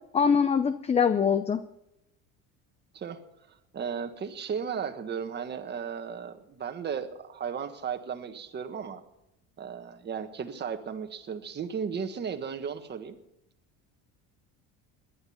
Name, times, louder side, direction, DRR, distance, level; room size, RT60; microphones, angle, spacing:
voice 1, 0.1-1.6, left 6 dB, 20° left, 12 dB, 0.6 m, -23 dB
voice 2, 3.7-9.0 9.6-13.2, right 7 dB, 30° right, 7 dB, 1.5 m, -35 dB
18.5 x 11.5 x 5.8 m, 0.85 s
cardioid pair, 140°, 34 cm